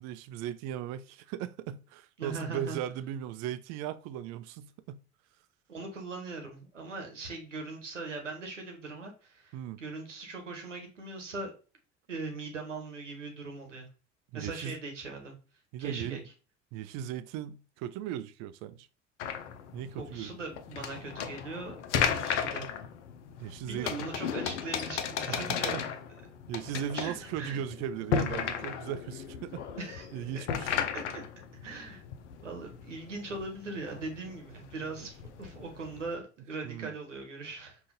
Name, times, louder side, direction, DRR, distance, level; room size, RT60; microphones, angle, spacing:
voice 1, 0.0-5.0 9.5-9.8 14.3-14.8 15.7-16.2 16.7-18.9 19.7-20.3 23.4-24.1 25.3-25.9 26.5-29.7 30.1-30.8 36.6-36.9, right 10 dB, 50° right, 0.5 m, -37 dB
voice 2, 2.2-2.8 5.7-11.5 12.1-13.9 14.3-15.3 15.8-16.2 20.0-22.7 23.7-25.7 26.9-27.6 29.8-30.1 30.3-30.4 30.9-31.2 31.6-32.0 32.4-37.8, right 3 dB, 85° right, 1.1 m, -40 dB
sound 1, 19.2-36.1, left 7 dB, 70° left, 0.7 m, -35 dB
5.1 x 2.5 x 3.8 m
figure-of-eight pair, 65°, 36 cm